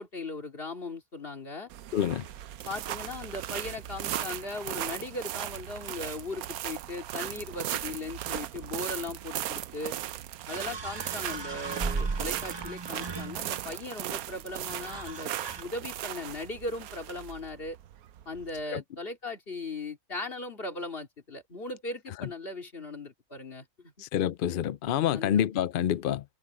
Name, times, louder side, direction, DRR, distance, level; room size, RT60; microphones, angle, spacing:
voice 1, 0.0-1.7 2.6-9.9 10.5-15.3 15.6-17.8 18.3-23.9 25.1-25.5, left 2 dB, 40° left, 2.9 m, -38 dB
sound 1, 1.7-18.6, right 12 dB, 90° right, 1.1 m, -37 dB
voice 2, 1.9-2.2 18.7-18.8 24.0-26.2, left 10 dB, 70° left, 0.5 m, -27 dB
sound 2, 9.8-9.9 10.5-13.7 14.7-15.6, right 4 dB, 40° right, 0.4 m, -36 dB
omnidirectional pair, 1.5 m